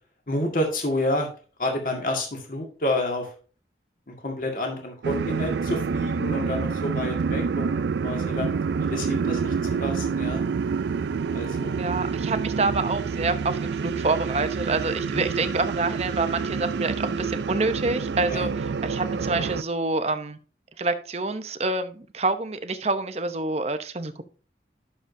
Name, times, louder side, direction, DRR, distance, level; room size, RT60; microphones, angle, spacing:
voice 1, 0.3-1.3 1.6-3.3 4.1-10.4 11.3-11.8 15.1-15.2 18.3-18.5, left 1 dB, 50° left, 2.0 m, -29 dB
sound 1, 5.0-19.6, right 5 dB, 80° right, 0.4 m, -27 dB
voice 2, 11.8-20.4 20.8-24.2, right 3 dB, 35° right, 0.8 m, -27 dB
11.0 x 6.8 x 2.7 m
head